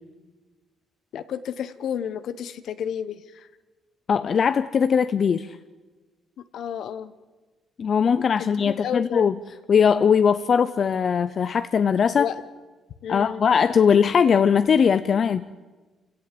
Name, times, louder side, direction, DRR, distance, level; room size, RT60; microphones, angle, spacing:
voice 1, 1.1-3.5 6.5-7.1 8.4-9.3 12.2-12.4 13.0-13.4, left 8 dB, 70° left, 12 dB, 1.2 m, -31 dB
voice 2, 4.1-5.6 7.8-9.4 9.7-12.3 13.1-15.5, left 7 dB, 50° left, 12 dB, 0.7 m, -20 dB
28.0 x 17.0 x 7.7 m, 1.3 s
cardioid pair, 90°, 0 cm